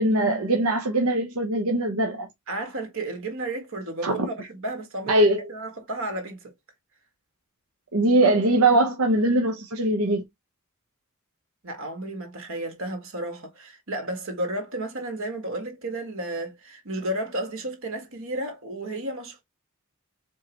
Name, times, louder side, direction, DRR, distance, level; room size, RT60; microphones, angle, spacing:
voice 1, 0.0-2.3 4.0-4.2 5.1-5.4 7.9-10.2, right 1 dB, 85° right, 1.0 m, -21 dB
voice 2, 2.5-6.5 11.6-19.4, right 1 dB, 65° right, 1.7 m, -33 dB
4.6 x 3.8 x 3.0 m
head